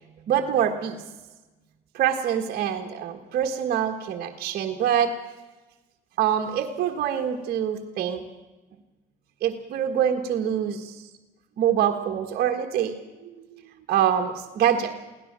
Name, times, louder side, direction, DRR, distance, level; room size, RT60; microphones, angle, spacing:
voice 1, 0.3-1.0 1.9-5.1 6.2-8.2 9.4-11.0 11.6-13.6 13.9-15.0, right 9 dB, 65° right, 2 dB, 1.6 m, -25 dB
24.0 x 17.0 x 7.5 m, 1.2 s
cardioid pair, 110°, 17 cm